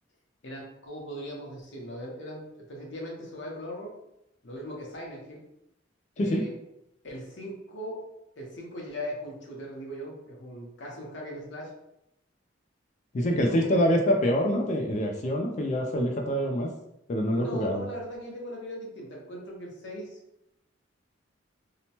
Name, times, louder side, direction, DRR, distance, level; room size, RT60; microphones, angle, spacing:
voice 1, 0.4-2.4 2.7-3.9 4.4-5.4 6.2-6.5 7.0-8.0 8.4-11.7 13.3-13.8 17.3-20.2, equal, 70° left, -2 dB, 0.8 m, -39 dB
voice 2, 13.1-16.7 17.1-17.8, equal, 40° left, 2 dB, 0.3 m, -25 dB
2.8 x 2.1 x 2.8 m, 0.82 s
head